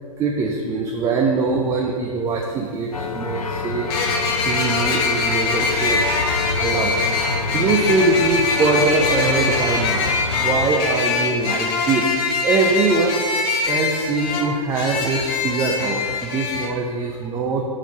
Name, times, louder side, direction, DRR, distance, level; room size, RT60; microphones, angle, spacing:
voice 1, 0.2-6.0 6.5-13.2 13.7-17.6, right 3 dB, 15° right, 0 dB, 0.4 m, -22 dB
sound 1, 2.3-2.4 3.9-16.7, left 4 dB, 40° left, 1.0 m, -23 dB
sound 2, 2.9-10.7, left 4 dB, 80° left, 0.5 m, -28 dB
5.1 x 4.9 x 5.9 m, 2.2 s
figure-of-eight pair, 105°, 19 cm